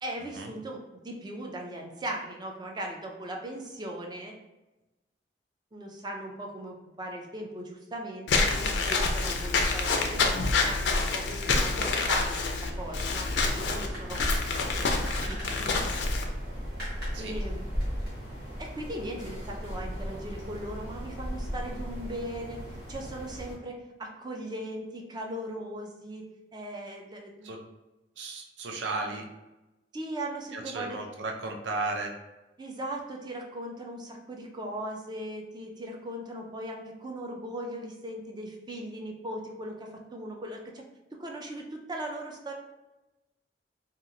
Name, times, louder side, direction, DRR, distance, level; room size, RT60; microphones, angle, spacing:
voice 1, 0.0-4.3 5.7-14.2 14.6-15.8 17.2-17.6 18.6-22.6 22.9-26.2 26.5-27.6 29.9-31.0 32.6-40.8 41.2-42.5, right 1 dB, 25° right, 0 dB, 0.4 m, -38 dB
Walk footsteps / Squeak, 8.3-16.2, left 3 dB, 70° left, 0.4 m, -27 dB
sound 1, 12.6-23.5, equal, 60° right, 1.1 m, -36 dB
voice 2, 28.2-29.3 30.5-32.1, right 3 dB, 80° right, 2 dB, 0.5 m, -34 dB
2.8 x 2.4 x 2.5 m, 1.0 s
head